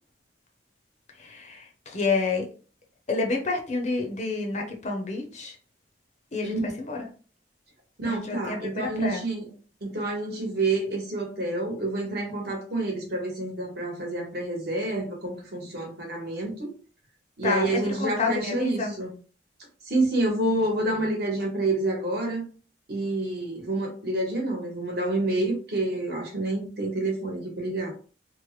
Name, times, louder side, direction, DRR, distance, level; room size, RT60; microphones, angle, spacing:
voice 1, 1.2-2.5 3.1-5.6 6.3-7.0 8.0-9.2 17.4-19.0, left 3 dB, 40° left, 2 dB, 0.6 m, -29 dB
voice 2, 8.0-9.5 9.8-16.7 17.4-19.1 19.8-22.4 22.9-27.9, right 2 dB, 60° right, 0 dB, 1.1 m, -28 dB
3.1 x 2.1 x 3.0 m, 0.38 s
head